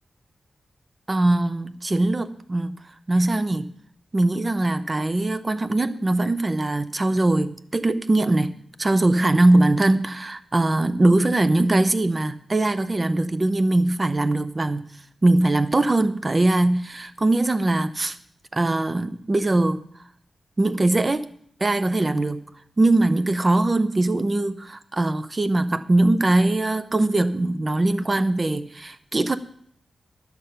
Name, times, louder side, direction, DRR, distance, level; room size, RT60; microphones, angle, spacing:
voice 1, 1.1-2.8 3.1-3.7 4.1-8.5 8.8-14.9 15.2-18.2 18.5-19.8 20.6-21.3 21.6-22.4 22.8-29.4, right 2 dB, 25° right, 12 dB, 0.6 m, -21 dB
12.0 x 7.0 x 5.7 m, 0.66 s
wide cardioid pair, 130°, 0 cm